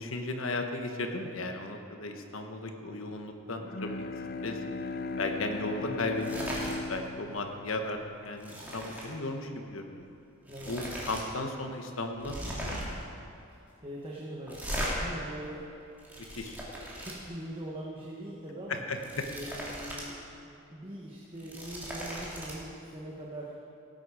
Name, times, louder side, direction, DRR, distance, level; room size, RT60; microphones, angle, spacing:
voice 1, 0.0-3.9 4.4-4.6 5.2-6.6 6.9-10.1 10.7-13.0 16.2-16.6 18.7-19.3, left 2 dB, 80° left, 4 dB, 1.3 m, -35 dB
Bowed string instrument, 3.5-8.9, left 3 dB, 50° left, 0.4 m, -38 dB
voice 2, 5.8-6.2 10.5-10.7 13.8-15.6 17.0-18.8 19.3-23.6, right 1 dB, 25° right, -4 dB, 1.3 m, -42 dB
sound 1, 6.1-6.8 7.1-7.4 7.7-9.1 10.0-10.1 10.4-11.2 11.5-11.6 12.2-13.0 14.5-14.9 15.7-17.1 18.8-20.1 20.4-20.5 21.2-22.5, equal, 10° right, 2.4 m, -38 dB
17.5 x 9.1 x 4.9 m, 2.6 s
head